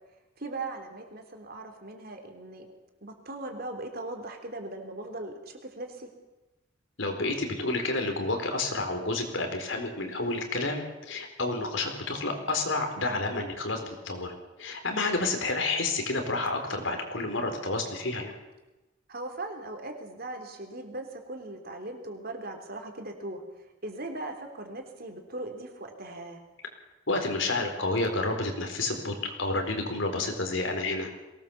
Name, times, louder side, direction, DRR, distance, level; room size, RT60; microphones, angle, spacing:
voice 1, 0.4-2.7 3.0-6.1 12.9-13.2 19.1-26.4, right 2 dB, 50° right, 4 dB, 3.4 m, -39 dB
voice 2, 7.0-14.3 14.6-18.3 27.1-31.1, left 2 dB, 75° left, 4 dB, 4.3 m, -30 dB
23.0 x 18.5 x 7.2 m, 1.1 s
head